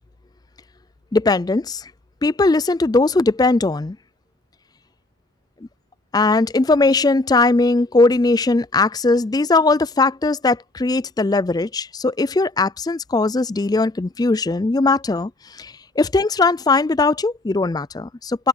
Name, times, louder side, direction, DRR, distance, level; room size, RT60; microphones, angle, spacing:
voice 1, 1.1-1.8 2.2-4.0 6.1-18.5, left 3 dB, 20° left, 0.3 m, -19 dB
open air
head